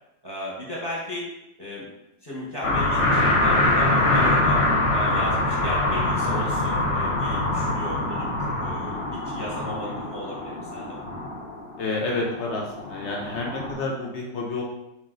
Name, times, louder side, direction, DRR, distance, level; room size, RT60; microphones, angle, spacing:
voice 1, 0.2-1.3 1.6-1.9 2.2-4.6 4.9-8.3 8.6-8.9 9.3-11.0, equal, 15° left, -6 dB, 0.9 m, -35 dB
sound 1, 2.6-13.7, left 2 dB, 50° left, 0.8 m, -24 dB
voice 2, 9.6-10.0 11.8-14.6, left 3 dB, 85° left, -1 dB, 0.6 m, -30 dB
4.5 x 3.0 x 3.8 m, 0.88 s
omnidirectional pair, 2.0 m